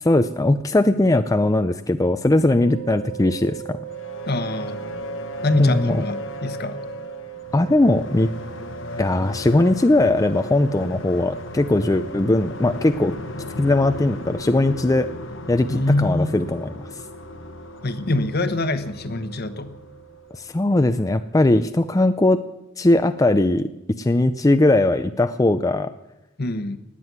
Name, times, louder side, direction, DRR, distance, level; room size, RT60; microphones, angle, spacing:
voice 1, 0.0-3.8 5.6-6.0 7.5-8.3 9.0-13.1 13.6-15.1 15.5-16.9 20.3-22.4 22.8-23.7 24.0-25.9, left 2 dB, 15° left, 9 dB, 0.5 m, -19 dB
sound 1, 2.6-20.4, right 15 dB, 75° right, 2.0 m, -41 dB
sound 2, 3.8-20.6, left 2 dB, 80° left, 1.2 m, -36 dB
voice 2, 4.3-4.8 5.4-6.8 15.7-16.3 17.8-19.7 26.4-26.8, left 2 dB, 55° left, 11 dB, 1.1 m, -24 dB
18.5 x 7.7 x 9.4 m, 0.92 s
head